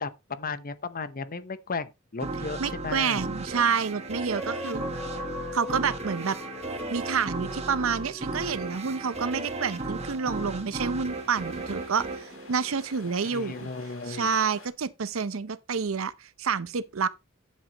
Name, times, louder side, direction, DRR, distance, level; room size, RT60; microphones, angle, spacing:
voice 1, 0.0-3.3 13.2-14.3, left 4 dB, 45° left, 0.8 m, -35 dB
sound 1, 2.2-13.4, right 2 dB, 30° right, 1.6 m, -36 dB
voice 2, 2.6-4.9 5.5-6.4 6.9-13.7 14.1-17.1, right 6 dB, 75° right, 0.7 m, -28 dB
sound 2, 4.3-10.0 10.5-10.6, left 3 dB, ahead, 1.2 m, -41 dB
sound 3, 8.9-14.7, left 3 dB, 75° left, 5.3 m, -50 dB
12.0 x 7.5 x 3.0 m
head